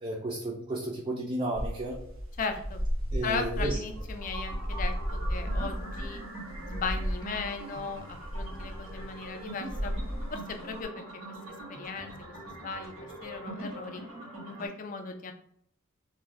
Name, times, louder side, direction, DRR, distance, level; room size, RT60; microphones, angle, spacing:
voice 1, 0.0-2.0 3.1-3.8, right 1 dB, 25° right, -3 dB, 0.4 m, -33 dB
sound 1, 1.5-10.8, equal, 75° right, 0.6 m, -34 dB
voice 2, 2.4-2.8 3.2-6.2 6.7-9.9 10.3-14.0 14.4-15.3, left 4 dB, 40° left, 6 dB, 0.3 m, -37 dB
sound 2, 3.9-14.7, right 1 dB, 90° right, 1.2 m, -43 dB
2.5 x 2.2 x 3.3 m, 0.69 s
head